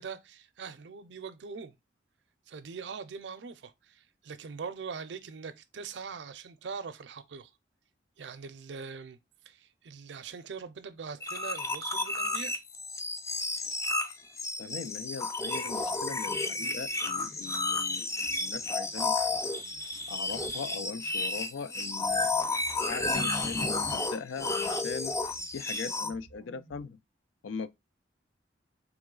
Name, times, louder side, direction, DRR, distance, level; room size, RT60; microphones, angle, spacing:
voice 1, 0.0-1.8 2.5-7.5 8.2-9.2 9.4-12.6, right 5 dB, 65° right, 0.5 m, -42 dB
sound 1, 11.2-26.1, left 3 dB, 15° left, 0.3 m, -32 dB
voice 2, 14.6-19.5 20.1-22.3 22.7-25.2 25.5-27.0 27.4-27.7, left 5 dB, 90° left, 0.4 m, -40 dB
sound 2, 15.5-26.8, equal, 55° left, 1.3 m, -58 dB
3.9 x 3.0 x 3.7 m
head